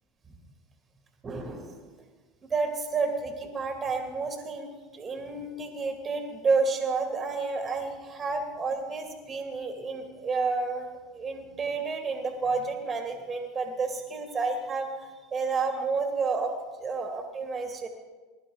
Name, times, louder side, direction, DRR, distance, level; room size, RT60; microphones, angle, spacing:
voice 1, 1.2-1.9 2.5-4.7 4.9-10.9 11.1-16.5 16.8-17.9, right 4 dB, 25° right, 3 dB, 2.3 m, -30 dB
20.5 x 11.5 x 3.9 m, 1.3 s
hypercardioid pair, 85°, 0 cm